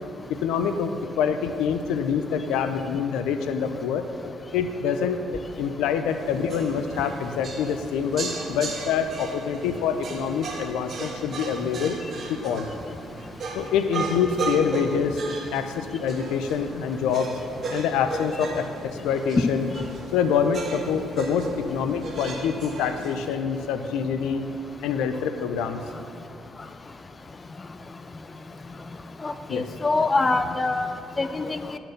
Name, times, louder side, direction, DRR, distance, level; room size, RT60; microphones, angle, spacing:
voice 1, 0.3-4.1 4.5-12.0 12.4-12.7 13.5-15.2 15.5-17.4 17.7-19.7 20.1-24.4 24.8-25.8 29.5-29.7, left 7 dB, 85° left, 8 dB, 0.5 m, -26 dB
sound 1, 6.1-23.3, right 3 dB, 50° right, 1.4 m, -36 dB
voice 2, 29.2-30.9 31.2-31.6, left 3 dB, 30° left, 10 dB, 0.5 m, -24 dB
11.0 x 4.5 x 6.4 m, 2.5 s
cardioid pair, 85°, 0 cm